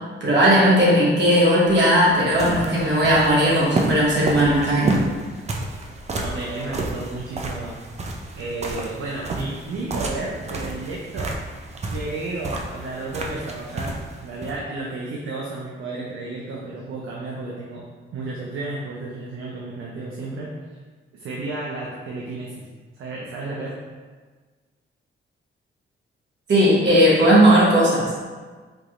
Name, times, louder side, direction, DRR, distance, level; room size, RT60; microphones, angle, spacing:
voice 1, 0.2-5.0 26.5-28.2, equal, 60° right, -6 dB, 1.1 m, -17 dB
sound 1, 1.6-14.6, right 2 dB, 30° right, 0.5 m, -31 dB
voice 2, 6.2-7.8 8.3-11.3 11.9-13.9 14.2-17.8 18.1-20.5 21.1-22.7 23.0-23.8, right 2 dB, 80° right, -4 dB, 0.6 m, -32 dB
4.7 x 2.9 x 2.5 m, 1.4 s
cardioid pair, 105°, 21 cm